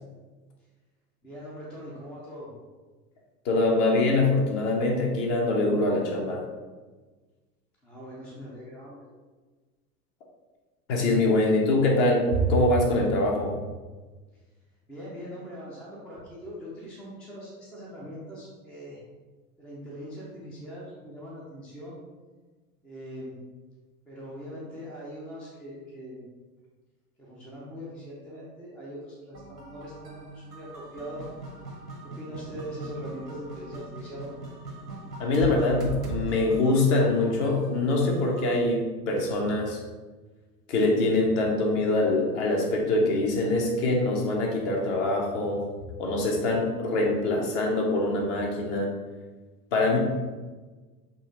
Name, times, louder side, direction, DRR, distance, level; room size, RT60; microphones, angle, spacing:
voice 1, 1.2-2.5 7.8-9.1 14.9-19.0 19.6-22.0 22.8-23.4 24.1-26.2 27.2-31.2 32.0-34.4, equal, 5° left, -6 dB, 0.4 m, -41 dB
voice 2, 3.4-6.4 10.9-13.5 35.2-39.8 40.7-45.6 46.0-48.9 49.7-50.0, left 2 dB, 45° left, 0 dB, 1.1 m, -24 dB
sound 1, 29.3-38.6, right 3 dB, 90° right, 1.0 m, -40 dB
4.2 x 2.5 x 3.8 m, 1.3 s
figure-of-eight pair, 85°, 47 cm